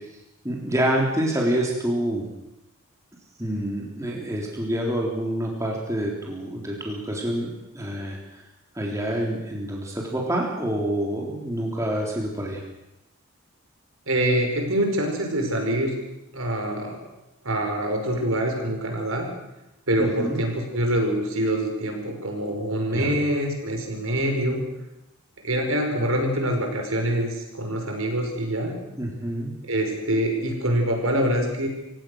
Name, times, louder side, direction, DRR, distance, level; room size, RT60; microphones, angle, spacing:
voice 1, 0.4-2.3 3.4-7.5 7.7-8.4 8.7-12.6 20.0-20.4 22.9-23.1 29.0-29.5, right 1 dB, 15° right, -2 dB, 3.7 m, -27 dB
voice 2, 14.1-15.9 16.3-17.0 17.4-19.3 19.9-24.6 25.4-28.8 29.6-31.7, right 1 dB, 70° right, 3 dB, 5.3 m, -25 dB
28.0 x 16.5 x 6.5 m, 0.92 s
head